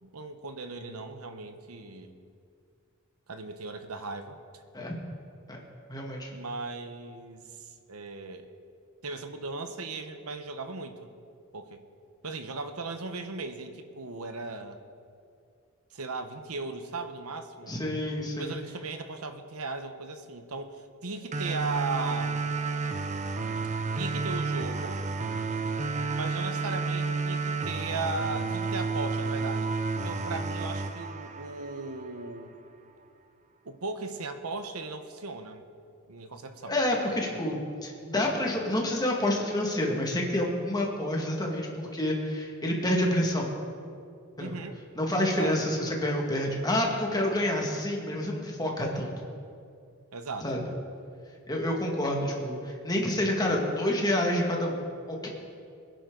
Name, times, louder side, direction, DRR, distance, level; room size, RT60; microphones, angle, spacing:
voice 1, 0.0-2.1 3.3-4.4 6.3-8.5 9.0-11.1 11.5-11.8 12.2-14.8 15.9-17.8 18.3-22.5 23.9-25.0 26.1-29.7 30.0-32.6 33.6-35.6 36.1-36.8 44.4-44.8 45.2-45.5 50.1-50.6, right 3 dB, 85° right, 8 dB, 1.1 m, -37 dB
voice 2, 5.9-6.3 17.7-18.5 36.6-43.5 44.4-44.6 45.0-49.1 50.4-50.6 51.5-54.8 55.1-55.3, left 1 dB, 20° left, -1 dB, 2.1 m, -28 dB
sound 1, 21.3-32.3, right 4 dB, 35° right, 0.7 m, -31 dB
22.5 x 10.5 x 4.0 m, 2.4 s
head